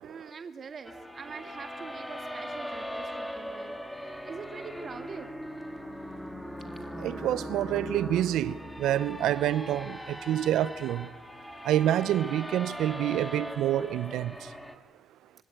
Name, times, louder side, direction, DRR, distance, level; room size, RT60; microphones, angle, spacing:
voice 1, 0.0-5.3, right 5 dB, 45° right, 2.3 m, -44 dB
sound 1, 0.8-14.7, equal, 5° left, 3.5 m, -40 dB
voice 2, 7.0-11.1 11.6-14.3, right 12 dB, 70° right, 0.8 m, -27 dB
27.0 x 17.5 x 9.1 m
supercardioid pair, 65°, 0 cm